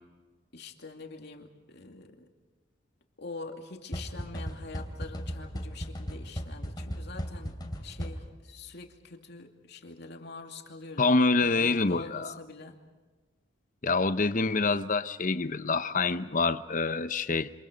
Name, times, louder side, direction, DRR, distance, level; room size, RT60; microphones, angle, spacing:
voice 1, 0.5-2.3 3.2-11.2 11.4-12.8, left 3 dB, 60° left, 3 dB, 2.6 m, -45 dB
sound 1, 3.9-8.5, equal, 20° left, 3.0 m, -37 dB
voice 2, 11.0-12.3 13.8-17.5, left 3 dB, 45° left, 12 dB, 0.8 m, -26 dB
28.0 x 27.0 x 5.2 m, 1.3 s
head